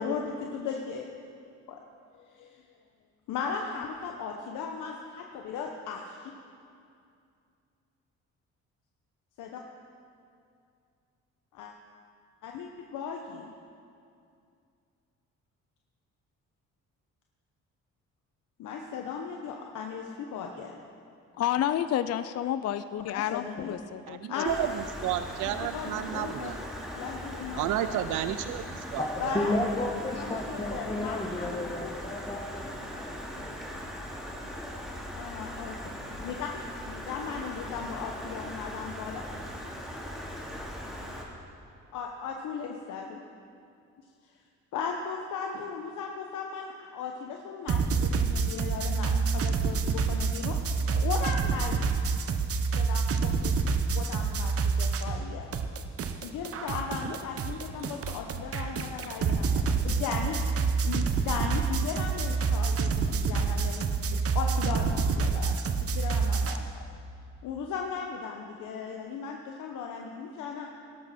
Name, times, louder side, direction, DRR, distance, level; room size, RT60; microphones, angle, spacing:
voice 1, 0.0-1.1 1.7-1.8 2.1-2.5 3.3-6.3 9.4-9.6 11.5-11.7 12.4-13.5 18.6-20.7 23.0-23.7 24.3-24.7 25.5-26.5 26.9-28.1 29.2-29.5 30.1-31.9 35.1-35.7 36.1-36.5 36.9-39.2 41.9-43.2 44.7-51.8 52.8-53.5 53.9-55.5 56.2-60.4 60.8-64.1 64.3-66.7 67.4-70.7, left 6 dB, 85° left, 1 dB, 1.0 m, -37 dB
voice 2, 21.4-24.4, left 11 dB, 55° left, 12 dB, 0.5 m, -30 dB
voice 3, 24.1-26.6 27.6-29.4, right 11 dB, 80° right, 10 dB, 0.5 m, -32 dB
Stream, 24.4-41.2, equal, ahead, 2.5 m, -39 dB
voice 4, 29.0-32.6 33.0-33.7, left 1 dB, 15° left, 0 dB, 1.3 m, -32 dB
sound 1, 47.7-55.3 55.5-66.6, right 5 dB, 50° right, 0.9 m, -28 dB
17.5 x 12.5 x 4.3 m, 2.4 s
cardioid pair, 90°, 30 cm